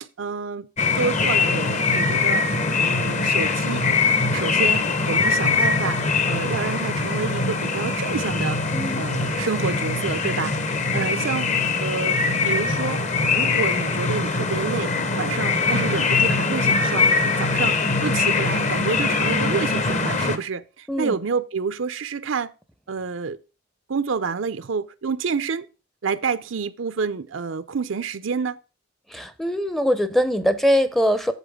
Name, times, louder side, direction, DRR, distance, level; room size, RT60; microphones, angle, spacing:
voice 1, 0.2-0.7 1.0-2.4 2.8-3.8 4.3-8.6 9.0-11.5 11.8-13.0 13.3-22.5 22.9-23.4 23.9-25.7 26.0-28.6, right 5 dB, 65° right, 0.6 m, -28 dB
sound 1, 0.8-20.4, left 4 dB, 35° left, 0.9 m, -22 dB
voice 2, 8.7-9.1 20.9-21.1 29.1-31.3, equal, ahead, 0.6 m, -22 dB
8.1 x 7.7 x 3.6 m
head